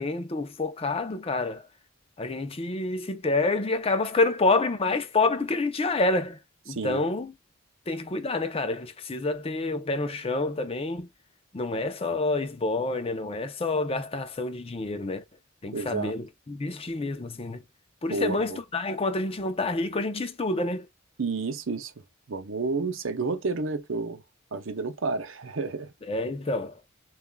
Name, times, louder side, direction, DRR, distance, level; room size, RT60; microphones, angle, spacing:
voice 1, 0.0-1.6 2.2-6.4 6.7-7.3 7.9-11.1 11.5-15.2 15.6-17.6 18.0-20.9 26.1-26.7, left 3 dB, 25° left, 0.5 m, -28 dB
voice 2, 6.7-7.1 15.7-16.1 18.1-18.6 21.2-21.9 22.3-24.2 24.5-25.9, right 3 dB, 65° right, 0.7 m, -30 dB
7.0 x 2.4 x 2.2 m
head